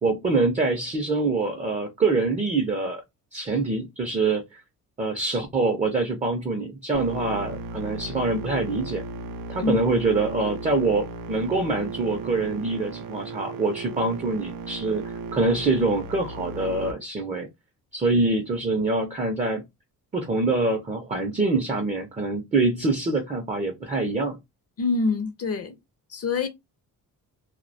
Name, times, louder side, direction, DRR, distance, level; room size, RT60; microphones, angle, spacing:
voice 1, 0.0-3.0 3.3-4.6 5.0-9.0 9.5-15.0 15.3-17.5 17.9-19.6 20.1-24.4, right 3 dB, 20° right, 0.5 m, -25 dB
sound 1, 6.9-16.9, right 3 dB, 70° right, 0.5 m, -36 dB
voice 2, 24.8-25.7 26.1-26.5, left 4 dB, 45° left, 0.5 m, -25 dB
2.2 x 2.1 x 2.6 m
cardioid pair, 110°, 35 cm